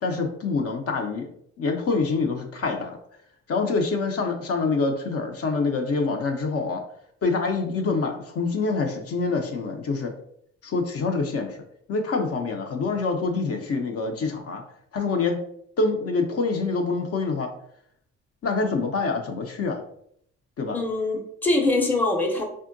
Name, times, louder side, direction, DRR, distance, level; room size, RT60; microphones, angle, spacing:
voice 1, 0.0-1.3 1.6-3.0 3.5-6.8 7.2-10.1 10.6-14.6 14.9-15.4 15.8-17.5 18.4-19.8 20.6-20.8, left 4 dB, 50° left, 3 dB, 0.5 m, -26 dB
voice 2, 20.7-22.4, left 2 dB, 5° left, 1 dB, 0.6 m, -23 dB
3.5 x 2.1 x 2.5 m, 0.68 s
cardioid pair, 90°, 30 cm